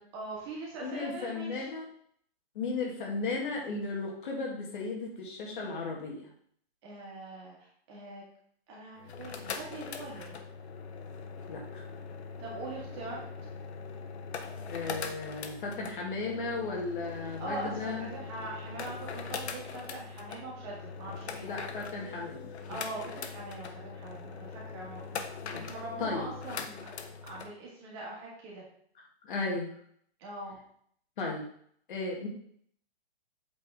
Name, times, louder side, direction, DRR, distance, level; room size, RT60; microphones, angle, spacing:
voice 1, 0.1-1.7 6.8-8.2 8.7-10.4 12.4-13.2 17.2-21.5 22.7-26.9 27.2-28.7 30.2-30.6, right 2 dB, 25° right, -4 dB, 1.9 m, -42 dB
voice 2, 0.8-1.9 2.6-6.3 11.5-11.8 14.7-18.1 21.5-22.5 25.5-25.6 26.0-26.3 29.2-29.7 31.2-31.5 31.9-32.3, left 3 dB, 50° left, -2 dB, 2.0 m, -35 dB
sound 1, 9.0-27.5, left 5 dB, 85° left, 1.0 m, -41 dB
8.3 x 4.2 x 3.5 m, 0.64 s
hypercardioid pair, 170°, 32 cm